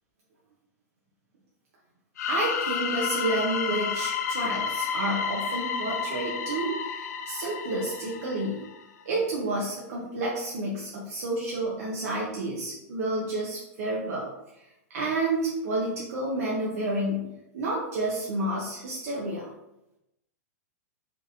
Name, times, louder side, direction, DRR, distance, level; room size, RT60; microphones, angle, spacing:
sound 1, 2.2-8.8, left 6 dB, 85° left, 0.5 m, -31 dB
voice 1, 2.3-8.6 9.0-14.3 14.9-19.5, right 2 dB, 65° right, -4 dB, 1.0 m, -30 dB
4.6 x 3.3 x 2.7 m, 0.89 s
supercardioid pair, 160°, 9 cm